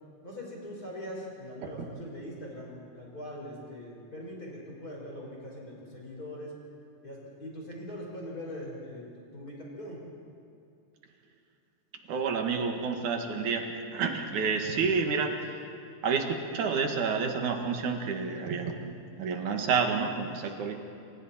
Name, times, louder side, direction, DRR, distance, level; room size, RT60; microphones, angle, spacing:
voice 1, 0.2-6.5 7.0-9.1 9.3-10.0, left 1 dB, 25° left, -3 dB, 5.4 m, -41 dB
voice 2, 12.1-15.6 16.0-20.7, right 5 dB, 70° right, 3 dB, 3.2 m, -29 dB
28.0 x 27.0 x 4.4 m, 2.6 s
omnidirectional pair, 3.6 m